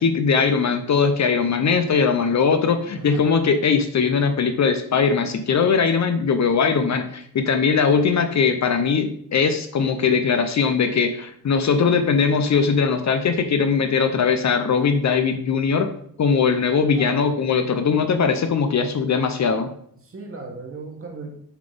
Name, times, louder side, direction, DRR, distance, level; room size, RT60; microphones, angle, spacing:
voice 1, 0.0-15.9 16.2-19.7, left 5 dB, 45° left, 8 dB, 0.7 m, -20 dB
voice 2, 2.9-3.2 16.9-17.4 20.0-21.3, right 3 dB, 35° right, 1 dB, 1.6 m, -37 dB
7.2 x 4.0 x 5.1 m, 0.66 s
wide cardioid pair, 155°, 38 cm